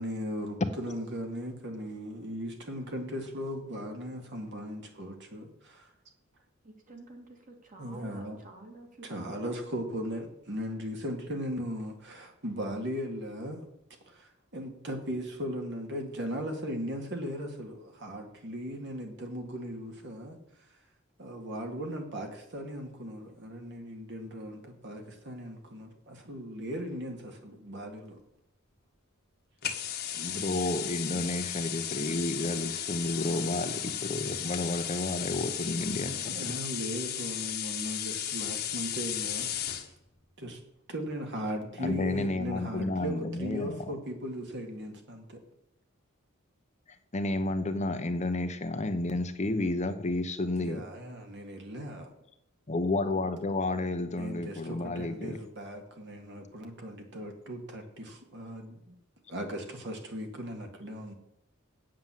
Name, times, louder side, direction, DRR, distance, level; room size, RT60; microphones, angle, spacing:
voice 1, 0.0-5.9 7.8-8.4 9.0-13.7 14.1-20.4 21.2-28.2 36.3-39.5 39.8-39.9 40.4-40.6 40.9-45.4 50.5-52.1 54.2-58.9 59.3-61.1, equal, 60° right, 3 dB, 2.1 m, -38 dB
voice 2, 6.6-9.1, right 2 dB, 40° right, 3 dB, 2.1 m, -50 dB
sound 1, 29.6-39.9, left 10 dB, 50° left, 1.3 m, -35 dB
voice 3, 30.2-36.5 41.8-43.7 47.1-50.8 52.7-55.4, left 2 dB, 35° left, 8 dB, 0.7 m, -31 dB
8.6 x 7.5 x 7.6 m, 0.80 s
head